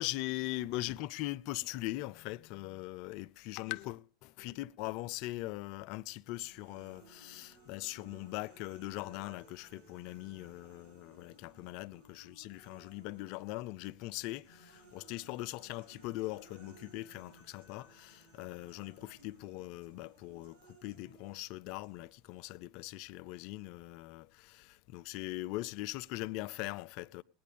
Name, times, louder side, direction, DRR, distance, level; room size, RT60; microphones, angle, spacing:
voice 1, 0.0-27.2, left 18 dB, 60° left, 0.6 m, -41 dB
sound 1, 6.4-13.5 13.8-22.4, right 2 dB, 85° right, 7.6 m, -61 dB
19.0 x 9.5 x 5.2 m
hypercardioid pair, 90°, 0 cm